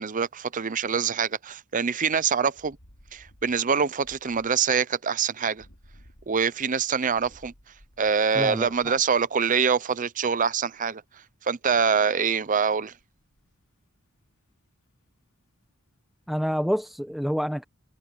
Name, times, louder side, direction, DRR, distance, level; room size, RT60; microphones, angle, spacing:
voice 1, 0.0-2.8 3.1-5.6 6.3-7.5 8.0-11.0 11.4-12.9, right 6 dB, 35° right, 0.6 m, -25 dB
sound 1, 2.5-9.4 12.9-13.5, equal, 60° left, 6.2 m, -56 dB
voice 2, 8.3-8.9 16.3-17.6, equal, ahead, 0.8 m, -28 dB
head